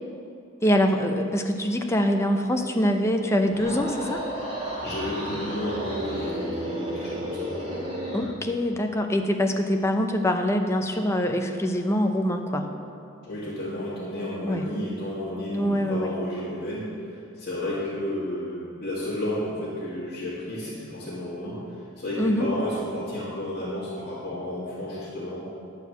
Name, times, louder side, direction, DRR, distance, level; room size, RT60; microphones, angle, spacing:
voice 1, 0.6-4.2 8.1-12.7 14.4-14.7 15.5-16.1 22.2-22.5, equal, 15° left, 4 dB, 0.6 m, -24 dB
sound 1, 3.4-8.3, equal, 25° right, 1.7 m, -32 dB
voice 2, 4.8-7.5 13.2-16.9 17.4-21.6 22.0-25.4, left 1 dB, 45° left, -12 dB, 2.4 m, -32 dB
11.0 x 4.8 x 7.9 m, 2.6 s
head